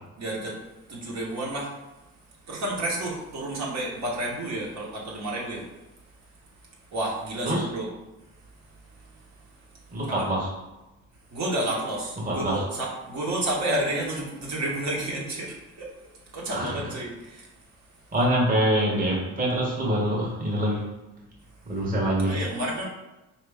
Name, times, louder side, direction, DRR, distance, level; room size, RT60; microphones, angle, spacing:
voice 1, 0.2-0.6 0.9-1.8 2.5-5.7 6.9-7.9 8.6-10.2 11.3-17.5 17.9-18.1 22.3-22.9, right 1 dB, 65° right, -4 dB, 1.4 m, -31 dB
voice 2, 9.9-10.5 12.2-12.6 16.5-16.8 18.1-20.8 21.7-22.4, right 1 dB, 30° right, -4 dB, 1.2 m, -25 dB
4.2 x 2.8 x 3.5 m, 1.0 s
cardioid pair, 90°, 30 cm